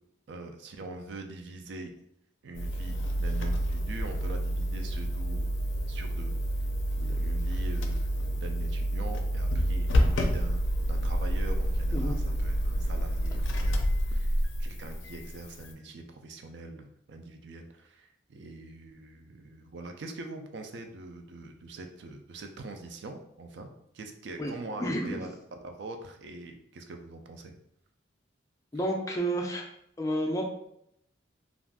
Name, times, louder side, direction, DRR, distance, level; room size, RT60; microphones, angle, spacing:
voice 1, 0.3-1.9 2.4-5.5 5.9-6.3 7.0-8.1 8.4-10.6 10.9-23.7 23.9-27.6, right 2 dB, 60° right, 5 dB, 0.4 m, -43 dB
sound 1, 2.5-15.7, equal, 75° left, 0.4 m, -28 dB
voice 2, 24.8-25.2 28.7-29.7 30.0-30.5, right 1 dB, 15° left, 0 dB, 0.4 m, -30 dB
2.4 x 2.3 x 3.4 m, 0.74 s
head